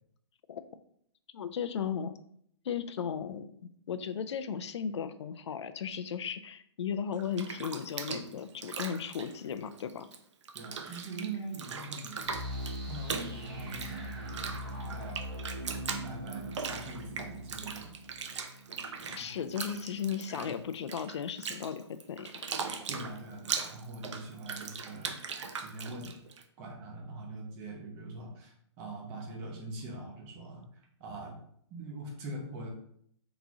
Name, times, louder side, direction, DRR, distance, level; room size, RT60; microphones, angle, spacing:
voice 1, 1.3-2.1 2.6-3.5 3.9-10.1 19.1-22.3, left 7 dB, 70° left, 11 dB, 0.4 m, -36 dB
Bathtub (filling or washing), 7.1-10.2 10.4-26.4, right 5 dB, 80° right, 0.6 m, -40 dB
voice 2, 10.5-12.3 12.8-15.2 16.0-17.9 19.0-19.4 20.3-20.5 22.9-26.2 26.6-31.4 31.7-32.7, right 2 dB, 20° right, -1 dB, 0.7 m, -43 dB
sound 1, 12.2-19.0, equal, 50° right, 1.2 m, -41 dB
3.9 x 3.0 x 3.6 m, 0.68 s
hypercardioid pair, 170°, 15 cm